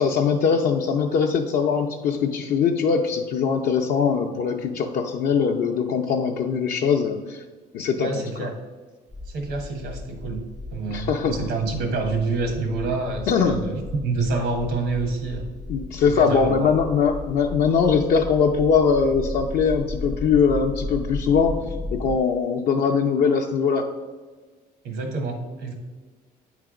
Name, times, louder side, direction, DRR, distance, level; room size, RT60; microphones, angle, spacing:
voice 1, 0.0-7.4 7.7-8.1 8.4-8.5 10.9-11.3 13.3-13.7 15.7-21.6 21.9-23.9, left 6 dB, 65° left, 0 dB, 0.5 m, -21 dB
voice 2, 8.0-8.5 9.3-10.4 10.7-15.5 16.1-16.7 24.8-25.7, right 3 dB, 80° right, 4 dB, 1.3 m, -27 dB
sound 1, 9.1-22.2, left 2 dB, 5° left, 0.4 m, -35 dB
8.4 x 3.3 x 5.0 m, 1.3 s
cardioid pair, 110°, 17 cm